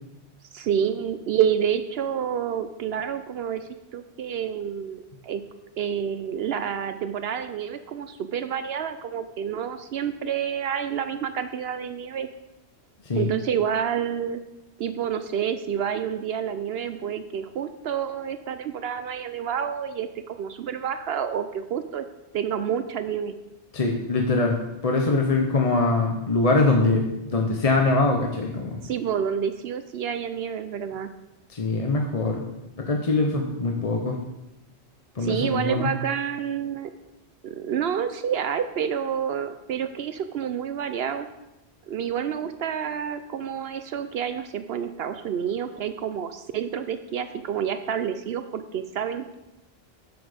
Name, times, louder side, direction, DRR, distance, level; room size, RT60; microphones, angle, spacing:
voice 1, 0.5-3.6 3.9-5.4 5.8-12.3 13.2-14.4 14.8-22.0 22.3-23.4 28.8-31.1 35.2-36.9 37.4-41.3 41.9-49.4, right 8 dB, 70° right, 10 dB, 0.8 m, -28 dB
voice 2, 23.7-24.6 24.8-28.8 31.5-32.4 32.9-34.2 35.1-35.9, left 3 dB, 35° left, 1 dB, 0.9 m, -23 dB
8.0 x 7.2 x 5.0 m, 0.94 s
omnidirectional pair, 1.1 m